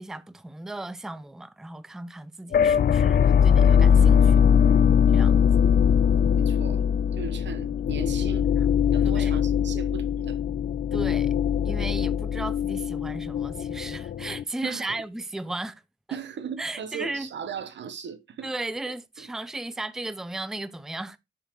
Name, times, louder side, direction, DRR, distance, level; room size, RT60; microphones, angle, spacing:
voice 1, 0.0-4.4 5.1-5.4 8.6-8.7 9.0-9.4 10.9-11.3 11.6-15.8 16.6-17.3 18.4-21.2, right 2 dB, 5° right, 0.4 m, -35 dB
sound 1, 2.5-14.4, left 8 dB, 60° left, 0.4 m, -21 dB
voice 2, 4.5-5.1 6.3-6.9 7.1-8.5 8.9-10.4 14.6-15.0 16.1-18.5 18.9-19.3, right 7 dB, 80° right, 0.9 m, -38 dB
6.9 x 5.6 x 3.0 m
cardioid pair, 90°, 18 cm